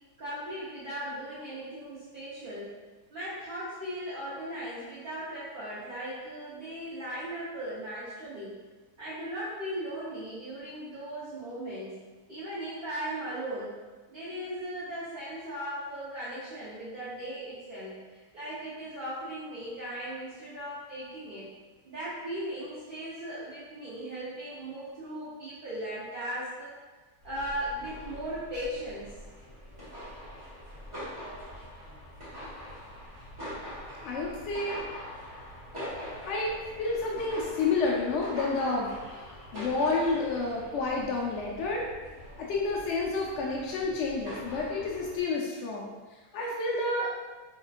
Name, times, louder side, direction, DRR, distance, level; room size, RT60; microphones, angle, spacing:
voice 1, 0.2-2.7 3.1-8.6 9.0-12.0 12.3-13.8 14.1-21.5 21.8-26.7 27.2-29.1, right 1 dB, 40° right, -10 dB, 0.8 m, -38 dB
sound 1, 27.2-45.2, equal, 20° right, 1.5 m, -44 dB
voice 2, 34.0-34.8 36.2-38.9 39.2-41.9 42.4-45.9 46.3-47.1, left 3 dB, 70° left, -3 dB, 0.7 m, -30 dB
4.4 x 3.3 x 2.4 m, 1.3 s
omnidirectional pair, 1.7 m